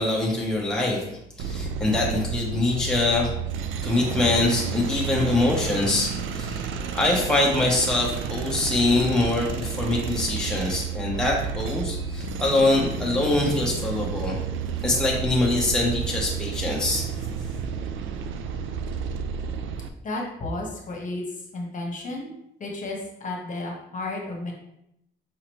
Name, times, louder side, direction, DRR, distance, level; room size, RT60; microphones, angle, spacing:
voice 1, 0.0-3.3 3.8-6.7 6.9-14.4 14.8-17.0, left 2 dB, 5° left, -3 dB, 0.9 m, -24 dB
sound 1, 1.4-19.9, right 6 dB, 85° right, 0.4 m, -31 dB
voice 2, 20.0-21.2 21.5-22.3 22.6-24.5, left 2 dB, 40° left, -1 dB, 1.2 m, -32 dB
5.0 x 2.9 x 3.1 m, 0.79 s
cardioid pair, 90°, 20 cm